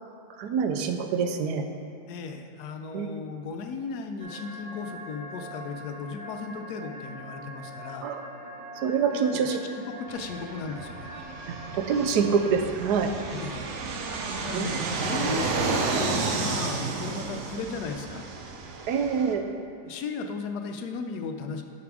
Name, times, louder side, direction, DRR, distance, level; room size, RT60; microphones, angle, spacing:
voice 1, 0.3-1.6 2.9-3.1 8.0-8.2 8.8-9.6 11.5-13.1 14.5-14.9 18.9-19.4, right 6 dB, 75° right, 6 dB, 1.1 m, -26 dB
voice 2, 2.1-8.1 9.1-9.6 9.9-11.1 13.3-13.7 14.3-18.3 19.8-21.6, left 5 dB, 75° left, 6 dB, 1.1 m, -36 dB
sound 1, 4.2-12.5, equal, 25° right, 0.8 m, -43 dB
Fixed-wing aircraft airplane, 10.1-19.3, right 4 dB, 60° right, 0.8 m, -32 dB
8.4 x 5.1 x 4.7 m, 2.6 s
omnidirectional pair, 1.8 m